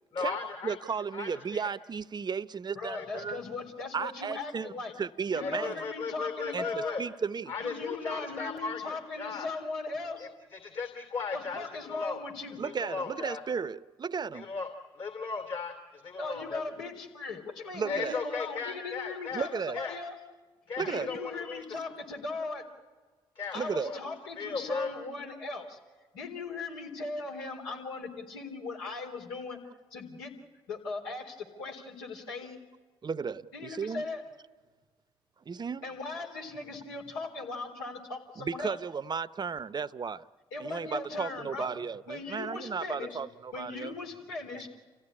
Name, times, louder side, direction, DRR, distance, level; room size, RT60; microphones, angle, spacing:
voice 1, 0.1-0.8 1.1-1.7 2.9-3.2 5.4-7.0 7.5-9.5 10.5-12.2 12.6-13.4 14.3-14.7 14.9-16.6 17.8-19.5 19.7-20.0 20.7-21.6 23.4-24.0 24.4-24.9, left 5 dB, 50° left, 2.8 m, -36 dB
voice 2, 0.6-3.4 3.9-4.7 5.0-5.7 6.5-7.5 12.6-14.5 17.7-18.2 19.3-19.8 20.8-21.1 23.6-23.9 33.0-34.0 35.5-35.8 38.5-40.2 40.6-43.9, right 5 dB, 35° right, 0.8 m, -34 dB
voice 3, 2.7-4.9 5.3-7.0 7.6-10.3 11.3-12.6 16.2-20.2 20.8-22.6 23.5-25.8 26.1-29.6 29.9-30.3 30.7-32.6 33.5-34.2 35.8-38.8 40.5-41.7 42.1-43.2 43.5-44.7, left 3 dB, 85° left, 3.9 m, -38 dB
29.0 x 15.5 x 9.9 m
hypercardioid pair, 50°, 12 cm